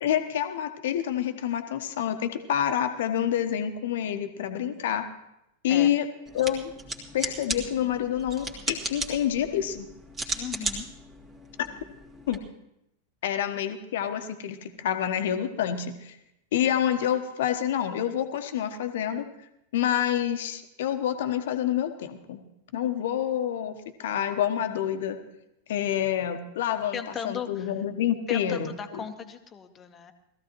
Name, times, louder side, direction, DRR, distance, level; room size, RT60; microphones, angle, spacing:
voice 1, 0.0-5.1 5.6-6.1 6.3-6.7 7.1-9.9 11.6-11.7 12.3-12.4 13.2-16.2 16.5-19.2 19.7-22.4 22.7-25.2 25.7-27.0 27.2-29.0, left 10 dB, 55° left, 8 dB, 1.1 m, -27 dB
sound 1, 6.3-12.4, right 2 dB, 20° right, 1.9 m, -36 dB
voice 2, 10.3-10.8 26.9-27.7 28.3-30.1, left 7 dB, 25° left, 8 dB, 1.1 m, -37 dB
19.5 x 14.5 x 3.1 m, 0.84 s
figure-of-eight pair, 90°, 0 cm